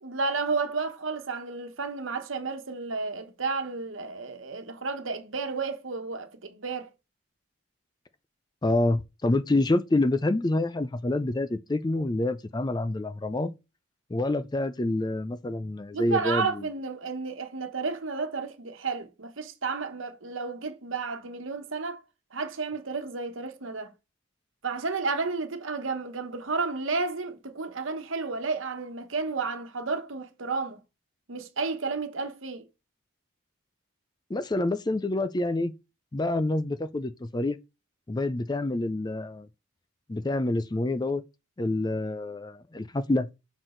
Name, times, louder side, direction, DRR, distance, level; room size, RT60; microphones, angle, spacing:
voice 1, 0.0-6.9 15.9-22.0 22.3-23.9 24.6-30.8 31.3-32.7, right 4 dB, 75° right, 1.2 m, -32 dB
voice 2, 8.6-13.6 14.1-16.7 34.3-35.7 36.1-37.6 38.1-39.5 40.1-41.2 41.6-43.3, left 2 dB, 20° left, 0.4 m, -27 dB
6.1 x 6.1 x 3.9 m
head